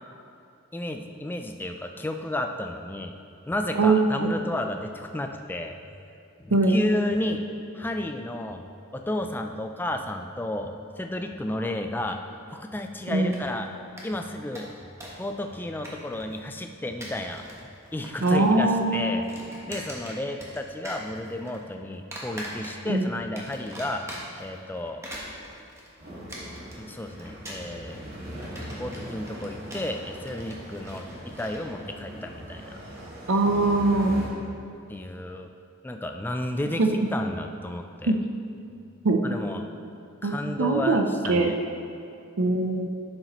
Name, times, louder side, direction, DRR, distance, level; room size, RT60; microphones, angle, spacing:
voice 1, 0.7-3.1 3.5-5.8 6.4-7.4 7.7-8.6 8.9-12.2 12.5-13.7 14.0-14.7 15.2-17.4 17.9-19.2 19.7-24.0 24.4-25.0 26.8-28.0 28.8-32.8 34.9-35.5 35.8-38.2 39.2-39.7 40.2-41.6, left 1 dB, 10° left, 5 dB, 0.3 m, -32 dB
voice 2, 3.8-4.3 6.5-6.8 13.1-13.3 18.2-19.2 22.9-23.1 33.3-34.2 36.8-36.9 38.1-38.2 39.0-39.2 40.2-41.0 41.3-41.5 42.4-42.9, right 2 dB, 75° right, 4 dB, 0.6 m, -22 dB
sound 1, 13.1-13.7 14.0-14.1 14.3-15.3 15.5-16.4 16.8-17.6 17.9-18.5 18.7-20.6 20.8-21.6 22.1-23.0 23.4-24.5 24.9-31.6, right 1 dB, 15° right, 1.0 m, -41 dB
sound 2, 26.0-34.3, equal, 45° right, 1.9 m, -40 dB
11.5 x 6.6 x 3.0 m, 2.6 s
head